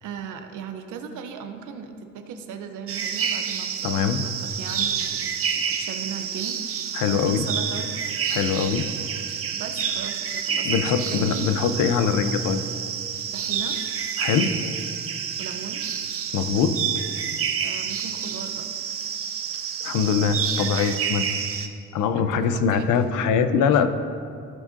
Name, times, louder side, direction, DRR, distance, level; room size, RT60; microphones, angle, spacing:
voice 1, 0.0-7.9 9.5-11.7 13.3-13.8 15.4-15.9 17.6-18.7 22.1-23.0 23.7-23.9, right 6 dB, 85° right, 7 dB, 0.8 m, -37 dB
sound 1, 2.9-21.7, right 7 dB, 50° right, 0.7 m, -29 dB
voice 2, 3.8-4.2 6.9-7.5 8.3-8.9 10.6-12.6 14.2-14.6 16.3-16.8 19.8-21.7 21.9-23.9, left 6 dB, 90° left, 10 dB, 0.6 m, -23 dB
14.5 x 6.2 x 2.6 m, 2.4 s
cardioid pair, 90°, 30 cm